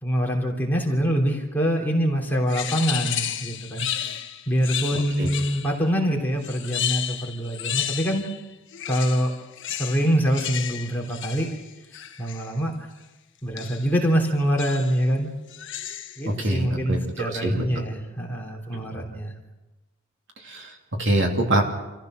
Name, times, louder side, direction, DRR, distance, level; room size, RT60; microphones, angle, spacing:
voice 1, 0.0-8.2 8.9-9.3 9.7-11.5 12.2-12.9 13.4-15.3 16.2-19.4, equal, 10° left, -1 dB, 3.3 m, -25 dB
sound 1, 2.5-5.9 6.4-8.4 8.7-12.5 13.6-13.9 14.6-15.0 15.5-16.3, left 10 dB, 60° left, 1.1 m, -32 dB
voice 2, 4.9-5.3 16.3-17.6 20.4-21.6, right 1 dB, 60° right, 2 dB, 2.8 m, -25 dB
27.0 x 15.0 x 6.4 m, 1.1 s
head